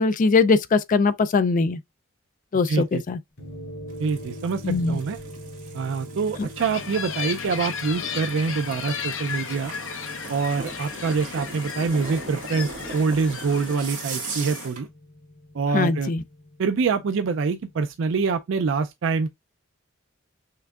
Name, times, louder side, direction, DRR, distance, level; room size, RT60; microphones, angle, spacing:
voice 1, 0.0-1.8 2.5-3.2 4.6-5.0 15.7-16.2, left 4 dB, 40° left, 0.4 m, -21 dB
voice 2, 2.7-3.0 4.0-5.2 5.7-9.7 10.3-14.9 15.5-16.1 16.6-19.3, right 5 dB, 65° right, 0.4 m, -25 dB
sound 1, 3.4-17.9, equal, 85° left, 3.0 m, -43 dB
sound 2, 3.9-14.9, right 4 dB, 40° right, 1.8 m, -40 dB
sound 3, 6.6-14.7, left 6 dB, 70° left, 0.8 m, -35 dB
5.7 x 3.5 x 2.3 m
head